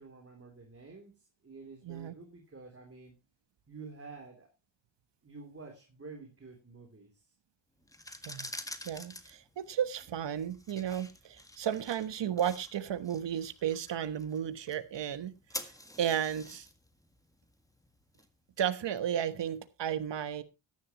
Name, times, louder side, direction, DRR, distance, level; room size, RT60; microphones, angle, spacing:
voice 1, 0.0-3.2 3.7-4.5 5.2-7.3, right 4 dB, 30° right, 3.2 m, -49 dB
sound 1, 7.8-18.7, left 1 dB, 5° left, 1.6 m, -48 dB
voice 2, 8.8-15.3 15.6-15.7 16.0-16.7 18.6-20.4, right 9 dB, 65° right, 1.2 m, -33 dB
14.0 x 11.0 x 3.0 m
cardioid pair, 80°, 47 cm